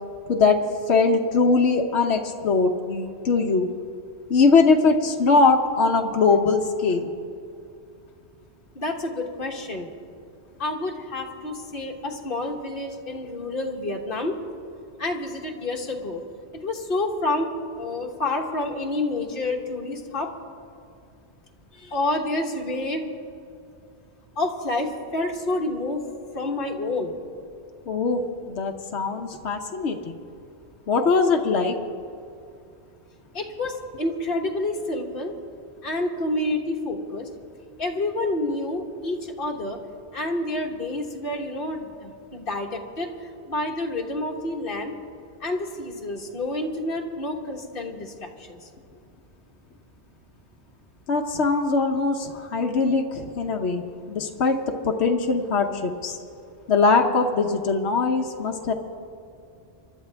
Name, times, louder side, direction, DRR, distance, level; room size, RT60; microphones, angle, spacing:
voice 1, 0.9-3.7 4.3-7.1 27.9-28.2 28.5-30.2 30.9-31.8 51.1-53.8 54.1-54.6 54.8-56.2 56.7-58.7, left 4 dB, 75° left, 3 dB, 1.1 m, -21 dB
voice 2, 8.7-9.9 10.6-14.4 15.0-16.2 16.6-20.3 21.7-23.0 24.4-26.0 26.3-27.1 33.3-35.3 35.8-37.3 37.8-39.8 40.1-43.1 43.5-44.9 45.4-48.6, left 2 dB, 55° left, 2 dB, 1.5 m, -28 dB
25.0 x 12.0 x 3.4 m, 2.5 s
omnidirectional pair, 1.1 m